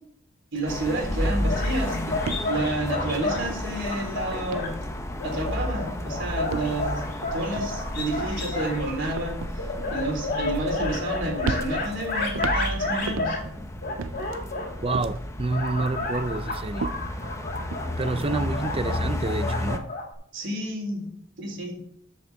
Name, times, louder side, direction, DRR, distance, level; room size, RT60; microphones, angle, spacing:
voice 1, 0.5-2.2 2.5-4.8 5.2-7.0 7.3-13.4 20.3-21.1 21.4-21.8, right 1 dB, 65° right, 3.7 m, -30 dB
sound 1, 0.5-0.8 1.0-4.0 4.4-5.2 5.5-5.9 6.4-11.1 11.4-13.6 14.0-15.4 15.8-17.8, right 4 dB, 85° right, 0.5 m, -37 dB
sound 2, 0.7-19.8, left 1 dB, 15° left, 0.9 m, -32 dB
sound 3, 1.5-3.4 3.8-4.7 5.2-8.8 9.6-13.5 13.8-15.0 15.4-20.1, left 2 dB, 50° left, 2.8 m, -31 dB
voice 2, 14.8-16.9 18.0-19.8, right 3 dB, 30° right, 0.5 m, -28 dB
14.0 x 6.5 x 3.5 m
head